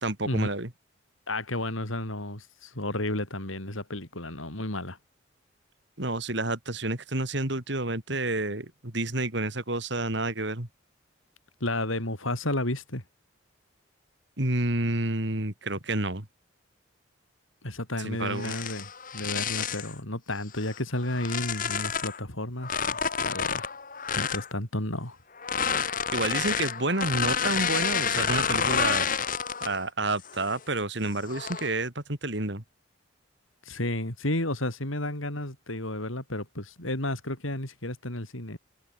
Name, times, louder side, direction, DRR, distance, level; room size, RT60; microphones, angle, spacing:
voice 1, 0.0-0.7 6.0-10.7 14.4-16.3 18.0-18.6 26.1-29.1 29.6-32.6, right 2 dB, 60° right, 3.3 m, -29 dB
voice 2, 1.3-5.0 11.6-13.0 17.6-23.7 24.1-25.2 33.6-38.6, left 1 dB, 85° left, 6.5 m, -32 dB
sound 1, 18.3-19.9 20.6-22.2 22.6-24.5 25.4-29.8 30.3-30.6 31.2-31.8, left 7 dB, 40° left, 1.7 m, -29 dB
head